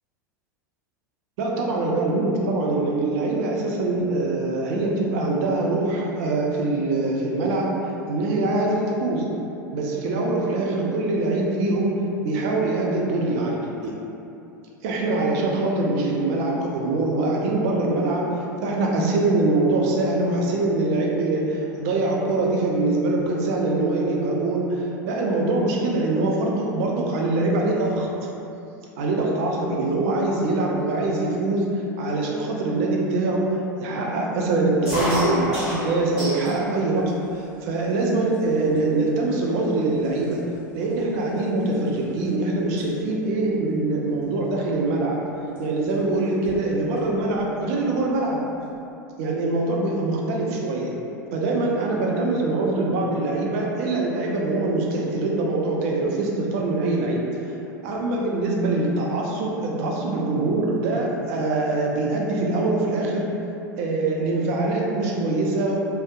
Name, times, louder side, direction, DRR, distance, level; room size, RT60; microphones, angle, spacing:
voice 1, 1.4-7.8 8.1-9.2 9.7-13.9 14.8-18.3 18.6-28.1 29.0-31.7 32.0-33.6 33.8-40.4 40.7-45.2 45.6-48.4 49.2-50.9 51.3-57.2 57.8-63.3 63.8-65.8, right 2 dB, 55° right, -2 dB, 0.4 m, -23 dB
sound 1, 34.9-36.6 37.0-37.7 38.3-38.4 38.7-39.1 39.7-39.8 40.0-42.3 42.6-42.9 44.2-44.5 45.6-45.7 45.9-46.0 46.3-47.1, equal, 10° right, 1.4 m, -31 dB
2.7 x 2.1 x 2.3 m, 2.7 s
figure-of-eight pair, 85°, 10 cm